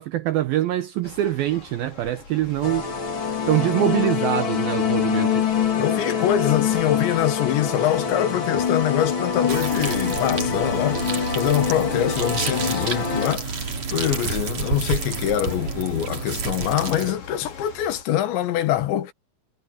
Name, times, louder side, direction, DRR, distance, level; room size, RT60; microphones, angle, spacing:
voice 1, 0.0-2.9 3.5-5.5, right 13 dB, 80° right, 2.2 m, -24 dB
sound 1, 1.0-18.0, left 4 dB, 50° left, 6.4 m, -45 dB
sound 2, 2.6-13.4, left 7 dB, 35° left, 2.7 m, -25 dB
voice 2, 5.7-19.1, left 11 dB, 80° left, 3.7 m, -24 dB
sound 3, 9.5-17.1, right 5 dB, 40° right, 3.5 m, -29 dB
omnidirectional pair, 5.2 m